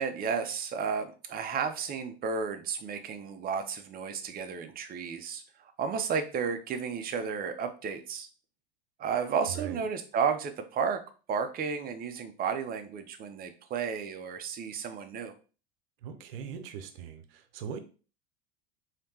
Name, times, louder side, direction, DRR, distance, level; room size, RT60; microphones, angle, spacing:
voice 1, 0.0-5.4 5.8-8.3 9.0-11.0 11.3-15.3, right 6 dB, 30° right, 7 dB, 0.6 m, -32 dB
voice 2, 9.5-9.8 16.0-17.8, right 7 dB, 75° right, 9 dB, 0.7 m, -40 dB
3.3 x 2.9 x 2.8 m, 0.36 s
hypercardioid pair, 95°, 29 cm